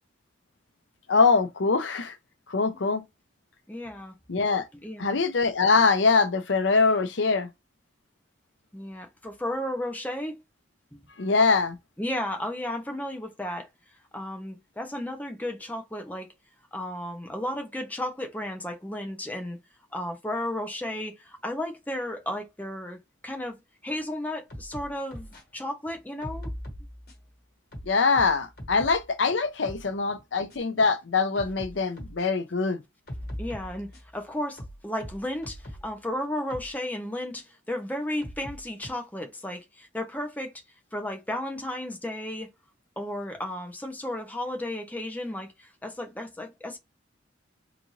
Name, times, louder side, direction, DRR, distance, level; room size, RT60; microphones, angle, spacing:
voice 1, 1.1-2.2 2.5-3.0 4.3-4.6 5.0-7.5 11.2-11.8 27.9-32.8, left 4 dB, 80° left, 0.7 m, -23 dB
voice 2, 3.7-4.1 4.7-5.2 8.7-10.4 10.9-11.1 12.0-13.7 14.1-16.3 16.7-19.6 19.9-23.0 23.2-23.6 23.8-26.5 33.4-40.5 40.9-42.5 43.0-46.8, left 1 dB, 10° left, 0.6 m, -34 dB
sound 1, 24.5-25.4 26.2-27.3 27.7-29.1 29.4-29.9 30.5-30.6 31.4-32.3 33.1-34.2 34.6-35.9 36.5-36.7 37.4-37.5 38.2-38.9, equal, 50° left, 1.4 m, -40 dB
3.9 x 2.5 x 3.1 m
head